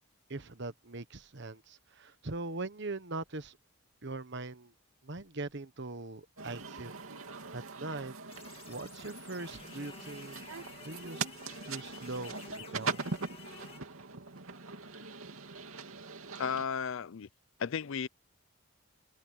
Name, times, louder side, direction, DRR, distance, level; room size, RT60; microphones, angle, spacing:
voice 1, 0.3-3.6 4.0-4.7 5.0-6.9 7.5-8.1 8.4-10.5 10.8-11.2 11.6-13.1, right 2 dB, 55° right, 1.2 m, -41 dB
sound 1, 6.4-16.6, right 4 dB, 75° right, 2.7 m, -41 dB
sound 2, 8.3-13.8, left 5 dB, 25° left, 2.3 m, -52 dB
voice 2, 16.4-17.3 17.6-18.1, left 6 dB, 65° left, 0.5 m, -34 dB
open air
head